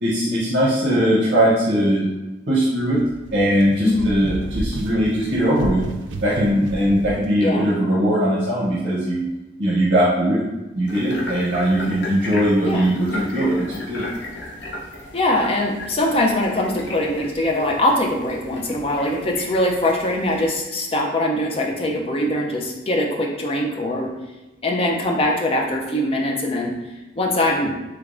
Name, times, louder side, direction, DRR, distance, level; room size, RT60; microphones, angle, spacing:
voice 1, 0.0-2.0 2.5-3.0 3.3-5.8 6.2-9.2 9.6-10.4 10.7-14.1, equal, 60° right, -7 dB, 0.7 m, -20 dB
sound 1, 2.9-7.3, right 2 dB, 75° right, 0.4 m, -31 dB
sound 2, 10.9-20.5, left 1 dB, 65° left, 0.7 m, -35 dB
voice 2, 15.1-24.1 24.6-26.8 27.2-27.7, left 1 dB, 30° left, 0 dB, 0.5 m, -22 dB
3.3 x 3.3 x 2.5 m, 1.0 s
head